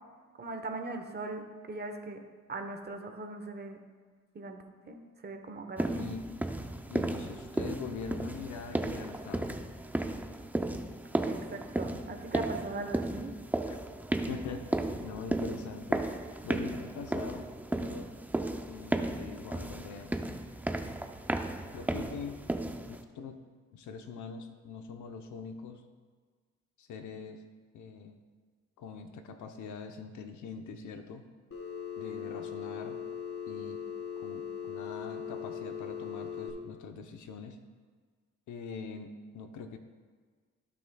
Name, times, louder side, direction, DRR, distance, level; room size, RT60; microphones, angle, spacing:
voice 1, 0.4-2.2 2.5-3.8 4.3-6.0 11.3-13.3, right 3 dB, 35° right, 5 dB, 1.1 m, -40 dB
sound 1, 5.8-23.0, right 1 dB, 5° right, 0.5 m, -34 dB
voice 2, 6.9-9.5 13.7-13.8 14.3-16.1 16.4-18.1 18.7-20.2 21.7-22.4 22.9-23.4 23.7-25.8 26.8-27.4 27.7-28.2 28.8-31.2 32.0-33.0 33.5-33.8 34.2-37.6 38.5-39.8, left 5 dB, 75° left, 6 dB, 0.9 m, -43 dB
Telephone, 31.5-36.5, left 8 dB, 45° left, 1.8 m, -39 dB
15.5 x 6.2 x 2.3 m, 1.6 s
cardioid pair, 90°, 30 cm